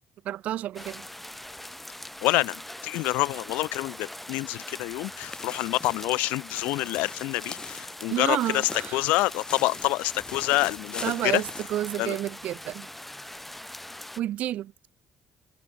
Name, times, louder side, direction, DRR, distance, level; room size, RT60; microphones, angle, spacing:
voice 1, 0.2-1.1 8.1-9.0 11.0-12.9 14.2-14.7, right 12 dB, 65° right, 2.4 m, -30 dB
sound 1, 0.8-14.2, left 1 dB, 5° left, 3.2 m, -42 dB
voice 2, 2.2-11.4 12.0-12.2, left 21 dB, 80° left, 0.4 m, -27 dB
sound 2, 5.2-12.6 12.9-13.0 13.5-13.6, left 4 dB, 30° left, 7.8 m, -42 dB
supercardioid pair, 80°, 3 cm